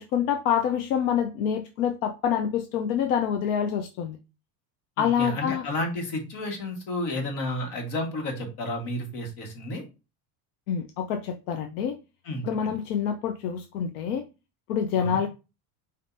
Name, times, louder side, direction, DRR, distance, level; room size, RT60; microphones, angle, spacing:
voice 1, 0.0-4.2 5.0-5.6 10.7-11.9 12.5-14.2 14.7-15.3, left 8 dB, 85° left, 0.6 m, -26 dB
voice 2, 5.0-9.8 12.2-12.7 14.9-15.2, left 1 dB, 60° left, 1.6 m, -31 dB
5.2 x 2.7 x 2.6 m
supercardioid pair, 130°, 44 cm